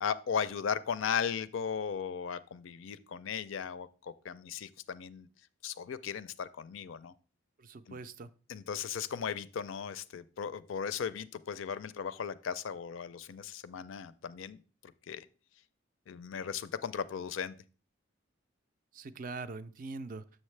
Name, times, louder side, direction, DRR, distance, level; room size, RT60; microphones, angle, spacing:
voice 1, 0.0-5.3 5.6-7.1 7.9-8.0 8.5-14.6 15.1-15.3 16.1-17.5, left 7 dB, 65° left, 15 dB, 0.4 m, -36 dB
voice 2, 7.6-8.3 18.9-20.2, right 3 dB, 40° right, 13 dB, 0.4 m, -42 dB
7.2 x 6.4 x 3.2 m, 0.37 s
head